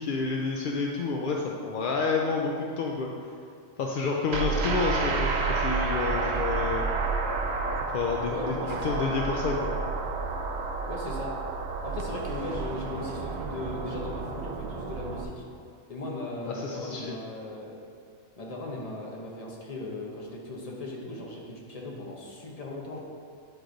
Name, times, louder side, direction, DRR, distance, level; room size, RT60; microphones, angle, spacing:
voice 1, 0.0-3.1 3.8-6.8 7.9-8.6 8.8-9.7 16.5-17.2, left 4 dB, 65° left, -1 dB, 0.5 m, -29 dB
sound 1, 4.3-15.2, right 4 dB, 65° right, 0.7 m, -30 dB
voice 2, 8.3-9.2 10.9-11.3 11.8-15.4 15.9-17.7 18.4-23.0, left 2 dB, 35° left, -2 dB, 0.9 m, -37 dB
8.8 x 3.2 x 3.8 m, 2.3 s
omnidirectional pair, 1.3 m